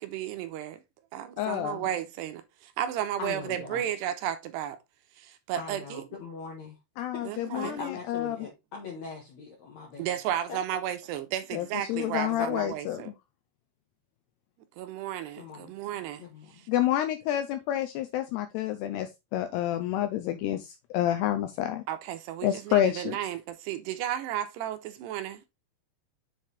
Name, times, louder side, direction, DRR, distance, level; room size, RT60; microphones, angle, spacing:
voice 1, 0.1-0.8 1.1-2.4 2.8-4.8 5.5-6.0 7.3-7.9 10.0-13.1 14.8-15.4 15.7-16.2 21.9-23.4 23.7-25.5, right 11 dB, 80° right, 2.6 m, -33 dB
voice 2, 1.4-1.8 7.0-8.4 11.5-13.1 16.7-21.8 22.4-23.2, left 12 dB, 85° left, 2.4 m, -29 dB
voice 3, 3.2-3.9 5.6-6.8 7.1-10.2 10.5-10.6 12.0-12.5 15.3-15.8 16.2-16.7, left 5 dB, 65° left, 1.8 m, -41 dB
7.4 x 4.6 x 3.3 m
omnidirectional pair, 5.3 m